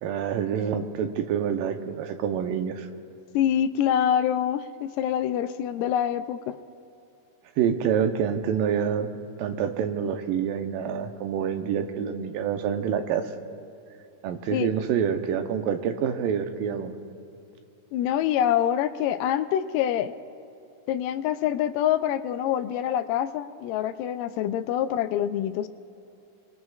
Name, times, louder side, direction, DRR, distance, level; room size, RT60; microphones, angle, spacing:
voice 1, 0.0-2.9 7.6-9.1 9.4-13.3 14.2-17.0, right 8 dB, 85° right, 6 dB, 2.5 m, -27 dB
voice 2, 3.3-6.6 14.5-14.7 17.9-20.1 20.9-25.7, left 10 dB, 80° left, 11 dB, 2.2 m, -25 dB
25.0 x 23.0 x 2.4 m, 2.6 s
omnidirectional pair, 3.9 m